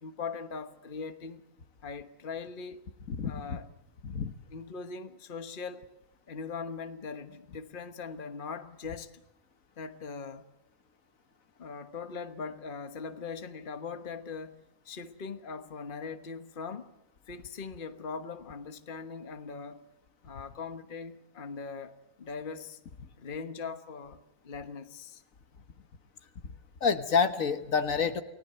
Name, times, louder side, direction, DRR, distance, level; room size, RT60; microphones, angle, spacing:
voice 1, 0.0-1.4 1.8-2.8 3.2-3.7 4.5-5.9 6.3-9.2 9.8-10.4 11.6-16.9 17.3-19.9 20.2-22.8 23.2-25.2, left 5 dB, 40° left, 1.3 m, -41 dB
voice 2, 3.1-3.6 4.0-4.3 26.8-28.2, left 5 dB, 65° left, 1.7 m, -28 dB
29.5 x 19.0 x 8.0 m
omnidirectional pair, 1.5 m